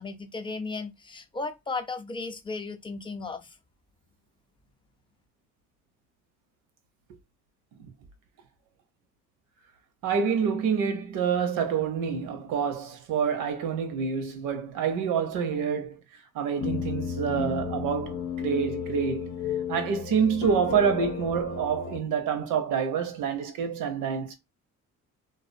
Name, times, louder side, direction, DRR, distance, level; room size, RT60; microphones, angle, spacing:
voice 1, 0.0-3.6, left 3 dB, 15° left, 0.4 m, -35 dB
voice 2, 10.0-16.0 16.3-19.4 19.7-24.4, right 6 dB, 90° right, 0.6 m, -27 dB
sound 1, 16.6-22.0, left 7 dB, 70° left, 0.6 m, -33 dB
2.4 x 2.1 x 2.5 m
cardioid pair, 90°, 30 cm